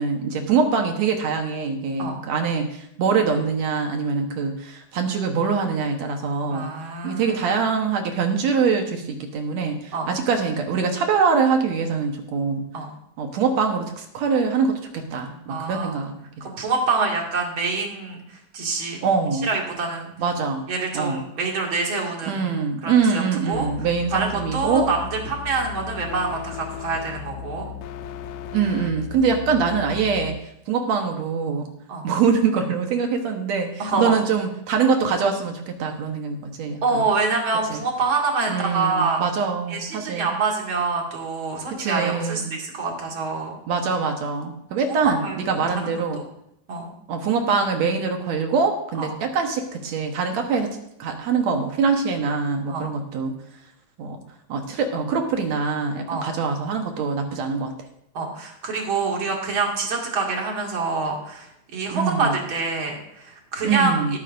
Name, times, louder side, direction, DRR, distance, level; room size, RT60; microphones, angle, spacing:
voice 1, 0.0-6.7 7.0-12.7 13.2-16.2 19.0-19.5 20.2-20.6 20.9-21.2 22.3-24.9 28.5-30.4 30.7-31.7 32.0-37.0 37.7-37.8 38.5-40.3 41.7-42.5 43.7-46.2 47.1-50.7 51.0-53.3 54.0-54.2 54.5-57.7 61.9-62.4 63.6-64.2, right 5 dB, 65° right, 4 dB, 2.1 m, -23 dB
voice 2, 6.5-7.4 9.9-10.1 12.7-12.9 15.5-16.0 16.4-19.0 19.3-20.1 20.7-22.5 22.8-27.7 31.9-32.1 33.8-34.2 36.8-39.2 39.7-43.6 45.0-46.0 46.7-46.9 49.0-49.1 52.7-52.9 56.1-56.3 58.1-64.2, right 4 dB, 40° right, 0 dB, 2.6 m, -26 dB
sound 1, 23.5-30.4, left 9 dB, 80° left, 1.9 m, -36 dB
18.5 x 9.2 x 2.6 m, 0.78 s
omnidirectional pair, 3.8 m